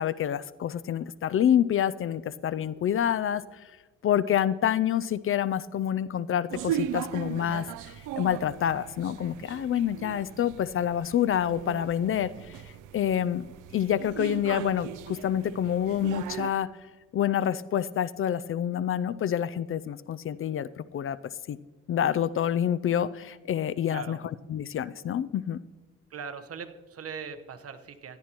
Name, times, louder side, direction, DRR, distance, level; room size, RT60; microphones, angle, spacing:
voice 1, 0.0-3.6 4.0-12.6 12.9-13.5 13.7-16.7 17.1-21.6 21.9-24.2 24.5-25.6, left 10 dB, 45° left, 18 dB, 0.4 m, -27 dB
sound 1, 6.5-16.5, right 11 dB, 90° right, 0.5 m, -38 dB
voice 2, 23.9-24.2 26.1-28.2, right 6 dB, 50° right, 9 dB, 1.1 m, -40 dB
16.5 x 11.0 x 3.0 m, 1.4 s
cardioid pair, 90°, 30 cm